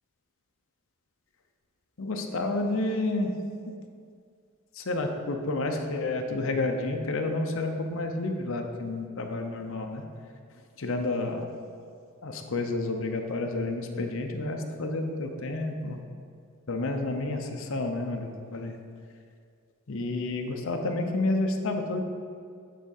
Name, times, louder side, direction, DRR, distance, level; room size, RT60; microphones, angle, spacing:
voice 1, 2.0-3.3 3.7-3.8 4.7-10.0 10.8-11.5 12.2-16.0 16.7-18.8 19.9-22.0, left 2 dB, 65° left, 4 dB, 0.7 m, -30 dB
7.9 x 3.6 x 6.5 m, 2.2 s
head